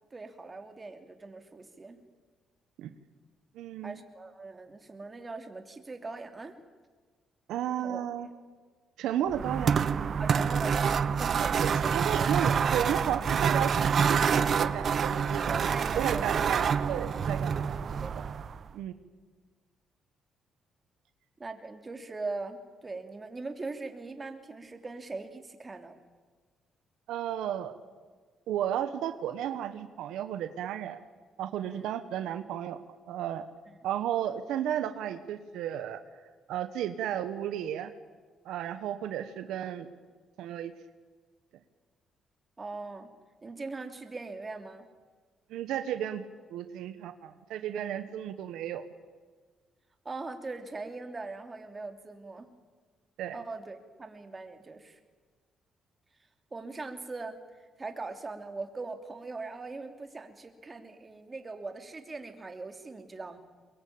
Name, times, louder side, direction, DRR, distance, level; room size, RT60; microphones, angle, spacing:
voice 1, 0.1-2.0 3.8-6.6 7.8-8.3 10.2-12.3 15.5-16.4 18.0-18.2 21.4-26.0 31.6-31.9 33.7-33.8 42.6-43.1 43.4-44.9 50.0-52.5 53.3-55.0 56.5-57.4 57.8-63.4, right 3 dB, 25° right, 7 dB, 3.1 m, -41 dB
voice 2, 3.5-3.9 7.5-8.3 9.0-9.8 11.8-15.7 16.0-17.8 18.7-18.9 27.1-27.7 28.5-31.0 31.4-32.8 33.1-33.4 33.8-36.0 36.5-37.9 38.4-39.9 40.4-40.7 45.5-46.2 46.5-48.8 53.2-53.4, right 10 dB, 85° right, 10 dB, 1.3 m, -33 dB
sound 1, 9.3-18.7, right 6 dB, 55° right, 1.1 m, -27 dB
23.0 x 22.5 x 8.9 m, 1.5 s
cardioid pair, 90°, 0 cm